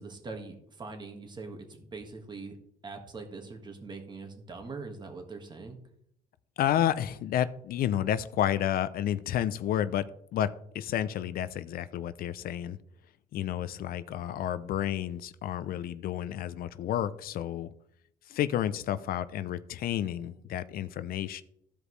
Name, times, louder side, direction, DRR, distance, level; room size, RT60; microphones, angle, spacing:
voice 1, 0.0-2.6 2.8-5.8, right 3 dB, 25° right, 4 dB, 1.7 m, -42 dB
voice 2, 6.6-10.0 10.3-12.8 13.3-17.7 18.3-21.4, left 11 dB, 60° left, 14 dB, 0.5 m, -30 dB
14.5 x 5.1 x 3.2 m, 0.71 s
cardioid pair, 110°, 17 cm